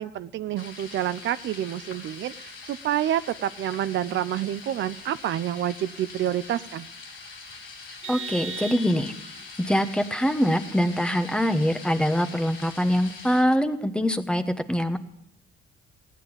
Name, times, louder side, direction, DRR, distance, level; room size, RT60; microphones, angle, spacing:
voice 1, 0.0-6.9, right 11 dB, 70° right, 13 dB, 0.5 m, -28 dB
sound 1, 0.6-13.4, left 4 dB, 85° left, 3.9 m, -43 dB
Vehicle horn car horn honking, 8.0-9.4, right 4 dB, 30° right, 1.8 m, -37 dB
voice 2, 8.1-9.1 9.6-14.4 14.7-15.0, equal, 5° left, 9 dB, 1.1 m, -24 dB
16.0 x 9.9 x 7.1 m, 0.80 s
cardioid pair, 90°, 20 cm